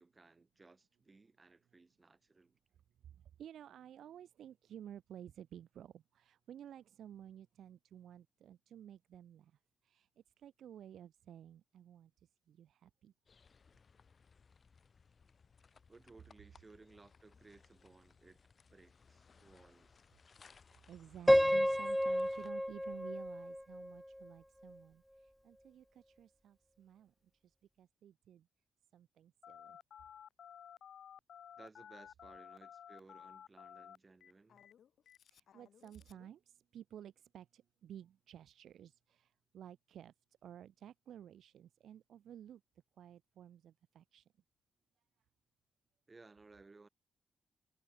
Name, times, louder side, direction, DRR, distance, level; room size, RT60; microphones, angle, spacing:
voice 1, 0.0-2.6 15.9-18.4 18.7-20.0 31.6-34.7 46.1-46.9, right 3 dB, 30° right, 2.6 m, -61 dB
voice 2, 3.4-9.5 9.8-10.1 10.4-12.1 12.5-13.1 20.9-25.0 25.4-27.1 27.8-28.5 28.9-29.8 35.3-40.1 40.4-42.6 43.0-44.2, right 10 dB, 80° right, 0.8 m, -54 dB
sound 1, 13.3-22.5, left 5 dB, 45° left, 4.8 m, -65 dB
Piano, 21.3-24.3, equal, ahead, 0.3 m, -31 dB
Telephone, 29.4-36.3, left 9 dB, 75° left, 2.7 m, -55 dB
cardioid pair, 80°, 0 cm